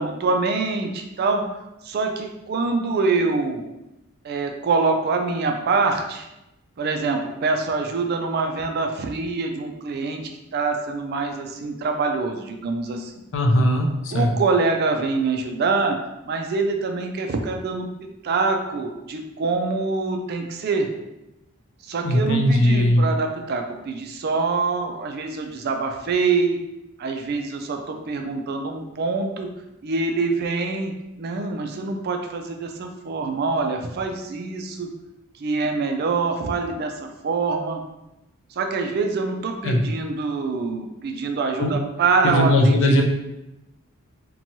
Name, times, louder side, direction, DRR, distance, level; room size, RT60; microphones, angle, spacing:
voice 1, 0.0-1.4 1.8-3.6 4.2-6.3 6.8-10.2 10.5-13.1 14.1-16.0 16.3-17.9 18.2-20.9 21.9-26.6 27.0-29.5 29.8-34.9 35.4-37.8 38.6-43.0, right 4 dB, 45° right, 4 dB, 0.3 m, -25 dB
voice 2, 13.3-14.3 22.0-23.1 39.6-39.8 41.6-41.8 42.2-43.0, left 1 dB, 55° left, 2 dB, 0.4 m, -19 dB
2.9 x 2.2 x 2.7 m, 0.94 s
head